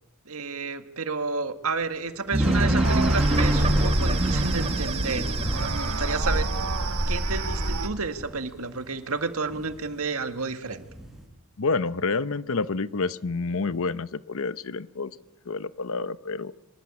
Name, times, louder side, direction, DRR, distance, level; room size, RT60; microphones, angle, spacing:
voice 1, 0.3-6.5 7.1-10.8, right 4 dB, 70° right, 8 dB, 1.9 m, -31 dB
sound 1, 2.3-9.0 9.5-10.2 10.6-11.2, equal, ahead, 7.9 m, -34 dB
sound 2, 2.3-6.7, right 1 dB, 25° right, 1.3 m, -25 dB
sound 3, 2.8-7.9, right 2 dB, 90° right, 2.3 m, -28 dB
voice 2, 11.6-15.2 15.5-16.5, left 4 dB, 65° left, 15 dB, 0.8 m, -28 dB
25.0 x 20.5 x 8.7 m, 0.92 s
head